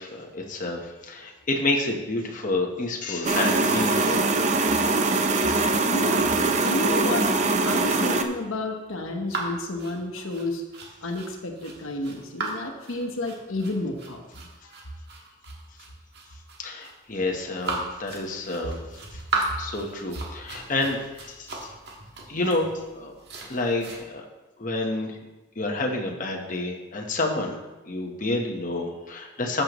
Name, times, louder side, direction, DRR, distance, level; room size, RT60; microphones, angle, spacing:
voice 1, 0.0-4.4 4.7-4.8 5.1-5.2 5.5-5.6 16.6-18.8 19.1-19.2 19.6-21.7 22.3-23.1 23.5-24.2 24.6-25.2 25.6-27.6 27.8-29.6, left 2 dB, 40° left, 1 dB, 1.1 m, -29 dB
sound 1, 3.2-8.2, right 3 dB, 35° right, 0.6 m, -22 dB
voice 2, 5.9-7.3 7.6-10.6 11.0-14.2 14.6-14.9, left 2 dB, 85° left, 3 dB, 1.1 m, -31 dB
sound 2, 9.3-24.0, right 3 dB, 50° right, 1.7 m, -36 dB
14.0 x 6.7 x 3.1 m, 1.1 s
head